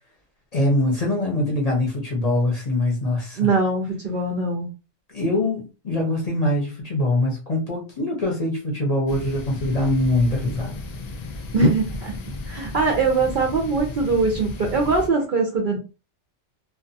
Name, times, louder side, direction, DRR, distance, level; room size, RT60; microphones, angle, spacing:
voice 1, 0.5-3.5 5.1-10.7, left 1 dB, 40° left, 0.7 m, -23 dB
voice 2, 3.4-4.7 11.5-12.1 12.5-15.8, right 3 dB, 55° right, 0.6 m, -21 dB
sound 1, 9.1-15.1, left 2 dB, 70° left, 0.3 m, -34 dB
2.5 x 2.3 x 2.6 m
omnidirectional pair, 1.2 m